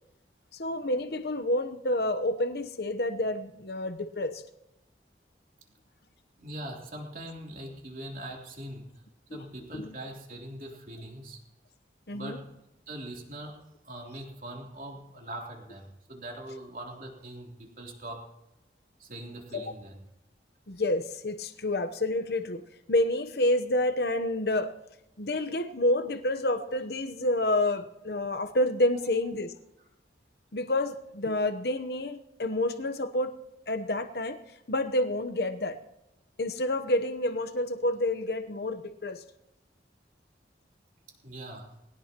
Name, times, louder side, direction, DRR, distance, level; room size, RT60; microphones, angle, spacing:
voice 1, 0.5-4.4 9.3-9.4 9.7-9.9 12.1-12.4 19.5-19.7 20.7-22.6 22.9-24.7 25.2-29.5 30.5-33.3 33.7-34.4 34.7-35.8 36.4-39.2, left 1 dB, 60° left, 8 dB, 1.0 m, -29 dB
voice 2, 6.4-9.0 9.3-11.4 12.1-12.5 12.9-13.6 13.8-18.3 19.0-20.0 28.9-29.2 41.2-41.8, right 1 dB, 50° right, 0 dB, 3.3 m, -42 dB
21.0 x 17.5 x 3.0 m, 0.88 s
head